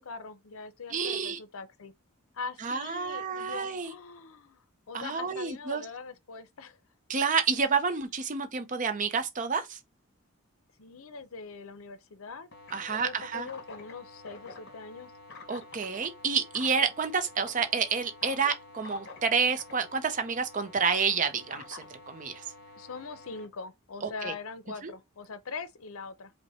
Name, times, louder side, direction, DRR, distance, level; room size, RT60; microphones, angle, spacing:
voice 1, 0.0-1.9 2.3-4.6 4.9-6.8 10.8-12.5 12.9-15.1 22.8-26.3, left 4 dB, 75° left, 0.6 m, -42 dB
voice 2, 0.9-1.4 2.6-3.9 4.9-5.8 7.1-9.8 12.7-13.5 15.5-22.4 24.0-24.3 24.8-24.9, right 5 dB, 35° right, 0.5 m, -29 dB
sound 1, 12.5-23.5, left 3 dB, 50° left, 1.2 m, -48 dB
5.5 x 2.1 x 4.2 m
head